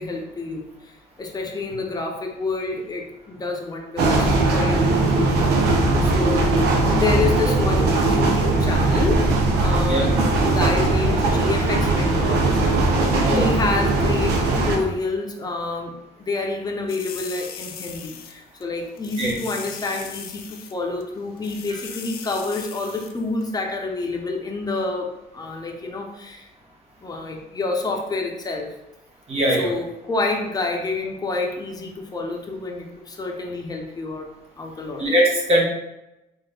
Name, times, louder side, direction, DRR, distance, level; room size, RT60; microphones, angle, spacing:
voice 1, 0.0-6.6 6.9-12.5 13.2-26.5 27.0-28.7 29.5-34.3 34.6-35.1, left 3 dB, 20° left, 2 dB, 0.7 m, -28 dB
sound 1, 4.0-14.8, right 2 dB, 80° right, 0.7 m, -19 dB
sound 2, 9.9-14.9, equal, 10° right, 1.2 m, -34 dB
sound 3, 16.9-18.3 18.6-18.7 19.0-20.7 21.0-21.1 21.4-23.1 23.4-23.5, left 7 dB, 65° left, 0.5 m, -38 dB
voice 2, 29.3-29.7 35.0-35.6, right 1 dB, 35° right, -2 dB, 1.2 m, -20 dB
3.8 x 2.5 x 3.4 m, 0.90 s
cardioid pair, 110°, 17 cm